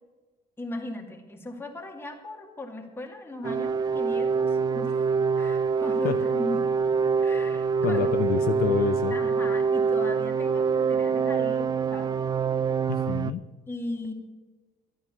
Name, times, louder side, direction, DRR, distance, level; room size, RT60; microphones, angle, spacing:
voice 1, 0.6-6.7 7.2-8.1 8.5-8.7 9.1-12.1 13.7-14.1, left 1 dB, 15° left, 1 dB, 2.2 m, -37 dB
sound 1, 3.4-13.3, right 5 dB, 25° right, 0.4 m, -25 dB
voice 2, 7.8-9.2 12.9-13.4, left 10 dB, 65° left, 9 dB, 0.6 m, -27 dB
12.5 x 9.4 x 7.0 m, 1.3 s
cardioid pair, 110°, 17 cm